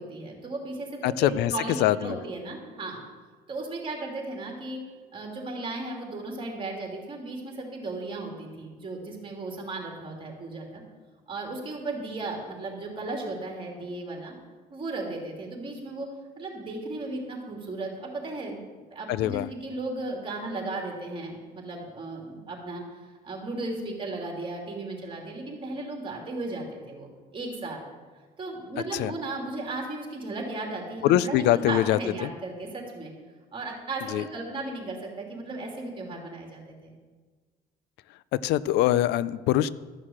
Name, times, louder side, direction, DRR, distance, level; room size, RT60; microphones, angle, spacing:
voice 1, 0.0-3.0 3.5-4.8 5.1-10.8 11.3-14.4 14.7-16.1 16.4-18.6 18.9-22.8 23.2-27.8 28.4-33.1 33.5-36.9, right 2 dB, 30° right, 0 dB, 3.2 m, -35 dB
voice 2, 1.0-2.2 19.1-19.5 28.9-29.1 31.0-32.3 34.1-34.2 38.3-39.7, left 13 dB, 85° left, 18 dB, 0.4 m, -24 dB
13.0 x 6.5 x 7.4 m, 1.4 s
cardioid pair, 110°, 17 cm